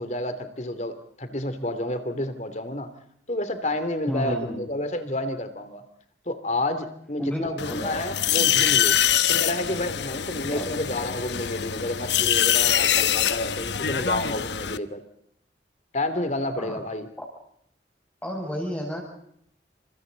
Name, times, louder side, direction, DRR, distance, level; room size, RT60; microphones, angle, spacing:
voice 1, 0.0-2.9 3.3-5.8 6.3-9.0 9.3-15.0 15.9-17.1, left 1 dB, 40° left, 9 dB, 2.9 m, -30 dB
voice 2, 4.0-4.6 7.2-8.0 10.5-10.7 16.6-16.8 18.2-19.0, equal, 10° left, -1 dB, 6.4 m, -31 dB
sound 1, 7.6-14.8, left 10 dB, 75° left, 1.0 m, -24 dB
29.5 x 27.0 x 4.0 m, 0.69 s
head